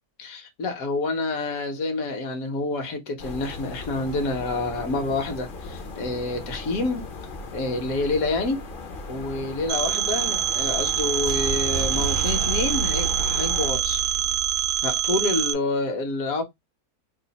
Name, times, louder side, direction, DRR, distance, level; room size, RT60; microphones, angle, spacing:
voice 1, 0.2-7.1 7.5-8.6 9.1-14.0 14.8-16.4, left 2 dB, 70° left, 1.4 m, -28 dB
sound 1, 3.2-13.7, left 3 dB, 45° left, 0.7 m, -37 dB
Telephone, 9.7-15.5, right 12 dB, 80° right, 1.0 m, -25 dB
sound 2, 10.4-15.5, right 3 dB, 55° right, 0.6 m, -32 dB
3.2 x 2.5 x 3.9 m
omnidirectional pair, 1.6 m